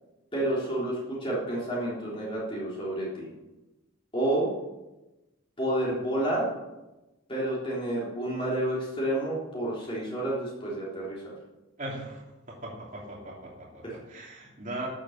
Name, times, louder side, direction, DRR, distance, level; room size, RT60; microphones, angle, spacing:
voice 1, 0.3-3.3 4.1-4.5 5.6-6.5 7.3-11.3 13.8-14.0, right 1 dB, 25° left, -6 dB, 3.6 m, -30 dB
voice 2, 11.8-14.9, right 1 dB, 40° right, -3 dB, 2.9 m, -39 dB
12.5 x 8.6 x 7.3 m, 1.0 s
head